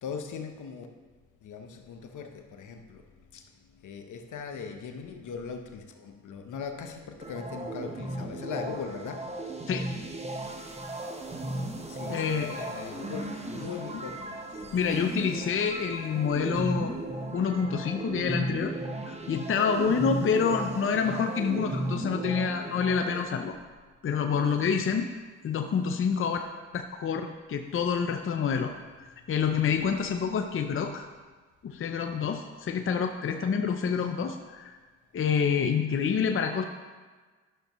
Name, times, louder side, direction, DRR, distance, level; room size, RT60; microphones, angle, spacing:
voice 1, 0.0-0.9 1.4-3.0 3.3-3.5 3.8-9.4 11.9-15.1 23.4-23.6, left 5 dB, 65° left, 5 dB, 1.0 m, -39 dB
sound 1, 7.2-23.2, right 2 dB, 20° right, 1.1 m, -36 dB
voice 2, 12.1-12.5 14.7-16.9 17.3-18.7 19.1-23.5 24.0-25.1 25.4-26.4 26.7-28.7 29.0-31.1 31.6-34.7 35.1-36.6, left 6 dB, 40° left, 5 dB, 0.7 m, -27 dB
11.0 x 6.4 x 3.1 m, 1.4 s
supercardioid pair, 55°, 33 cm